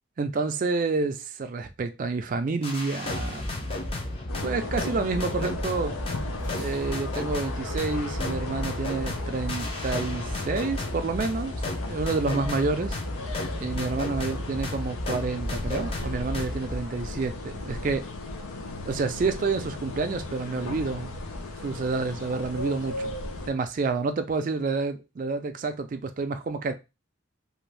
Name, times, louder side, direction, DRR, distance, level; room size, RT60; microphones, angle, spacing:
voice 1, 0.2-3.5 4.4-6.0 6.6-11.5 11.9-13.0 13.6-18.0 18.9-21.2 21.6-23.1 23.5-26.7, right 4 dB, 40° right, 0.3 m, -29 dB
sound 1, 2.6-16.8, left 1 dB, 25° left, 0.4 m, -33 dB
sound 2, 4.3-23.5, left 2 dB, 90° left, 0.5 m, -37 dB
sound 3, 6.4-8.6, left 1 dB, 50° left, 1.4 m, -49 dB
2.6 x 2.2 x 3.1 m
head